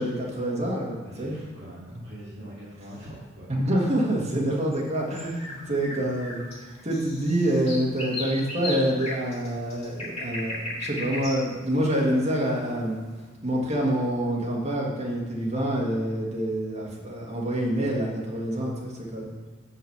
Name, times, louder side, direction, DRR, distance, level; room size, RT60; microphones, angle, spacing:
voice 1, 0.0-1.3 1.9-2.0 3.5-13.0 13.4-19.3, right 1 dB, 35° right, -3 dB, 1.5 m, -27 dB
voice 2, 1.0-3.5, equal, 65° right, -10 dB, 2.1 m, -43 dB
sound 1, 4.7-12.9, left 2 dB, 35° left, 2.2 m, -37 dB
5.7 x 5.1 x 6.7 m, 1.4 s
head